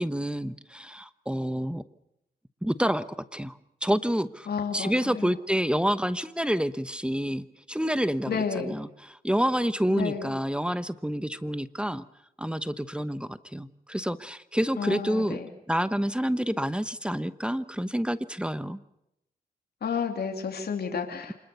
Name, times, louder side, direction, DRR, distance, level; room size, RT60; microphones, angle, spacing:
voice 1, 0.0-1.8 2.6-3.0 3.3-4.5 4.7-12.0 12.4-15.4 15.7-18.8, equal, 5° right, 14 dB, 1.0 m, -28 dB
voice 2, 4.5-5.3 8.2-8.7 9.9-10.3 14.8-15.5 19.8-21.3, left 6 dB, 75° left, 4 dB, 3.0 m, -31 dB
26.5 x 21.0 x 6.9 m, 0.82 s
cardioid pair, 70°, 17 cm